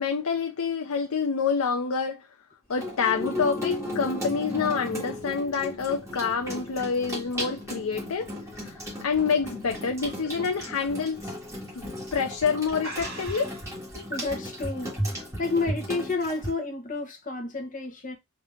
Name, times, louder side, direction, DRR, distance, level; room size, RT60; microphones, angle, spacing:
voice 1, 0.0-2.3 2.7-8.3 8.6-11.3 11.8-13.5 13.9-14.1, left 5 dB, 75° left, 0.5 m, -27 dB
Water tap faucet / Sink (filling or washing), 2.7-16.5, equal, 15° right, 1.6 m, -35 dB
sound 1, 6.7-9.8 10.2-10.5 10.9-11.0 11.8-12.0 12.3-12.4 12.8-13.7, right 1 dB, 45° right, 2.0 m, -42 dB
voice 2, 14.1-15.0 15.4-18.1, left 3 dB, 35° left, 1.1 m, -30 dB
3.9 x 2.8 x 3.4 m
head